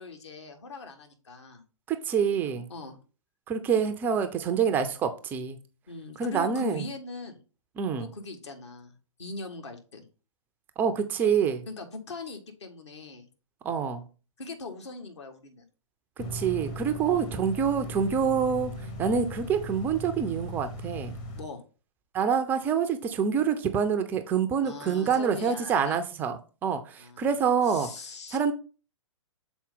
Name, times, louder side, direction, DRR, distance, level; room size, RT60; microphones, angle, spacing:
voice 1, 0.0-1.6 2.4-3.0 5.9-7.4 8.0-10.1 11.7-13.3 14.4-15.7 17.1-17.3 21.3-21.6 24.6-26.0 27.0-27.3 27.6-28.4, left 3 dB, 60° left, 1.5 m, -41 dB
voice 2, 1.9-2.7 3.5-5.6 6.2-6.9 7.8-8.1 10.8-11.6 13.6-14.0 16.2-18.7 19.0-21.1 22.1-27.9 28.3-28.5, right 7 dB, 10° right, 0.3 m, -26 dB
sound 1, 16.2-21.4, equal, 25° left, 0.9 m, -38 dB
6.9 x 4.2 x 3.7 m
figure-of-eight pair, 120°, 17 cm